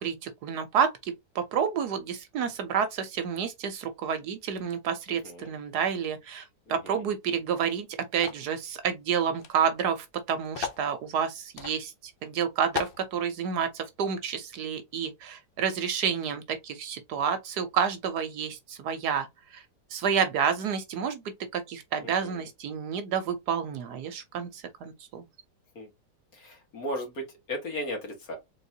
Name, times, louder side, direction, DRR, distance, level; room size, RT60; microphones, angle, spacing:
voice 1, 0.0-7.9 8.1-11.9 12.2-19.6 19.9-25.2, right 7 dB, 70° right, 1.2 m, -29 dB
voice 2, 6.7-7.0 22.0-22.5 25.8-25.9 26.3-28.4, equal, 55° left, 2.1 m, -36 dB
sound 1, 8.2-8.5 9.4-9.5 9.8-9.9 10.5-10.9 11.6-11.8 12.2-12.3 12.8-13.0, left 7 dB, 75° left, 0.5 m, -34 dB
3.9 x 3.6 x 2.7 m
omnidirectional pair, 1.9 m